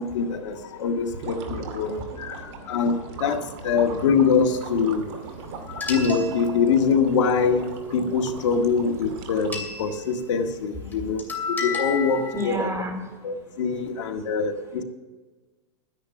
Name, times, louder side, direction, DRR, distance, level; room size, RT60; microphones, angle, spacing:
voice 1, 0.0-5.1 5.7-12.7 13.2-14.8, left 5 dB, 75° left, 5 dB, 1.7 m, -24 dB
sound 1, 1.0-9.9, right 4 dB, 60° right, 2.4 m, -39 dB
sound 2, 5.8-6.9 9.5-10.3 10.9-11.0 11.2-12.5, left 4 dB, 10° left, 2.6 m, -31 dB
voice 2, 12.1-14.3 14.7-14.8, right 1 dB, 20° right, 3 dB, 3.1 m, -35 dB
12.5 x 10.0 x 5.9 m, 1.3 s
hypercardioid pair, 125°, 16 cm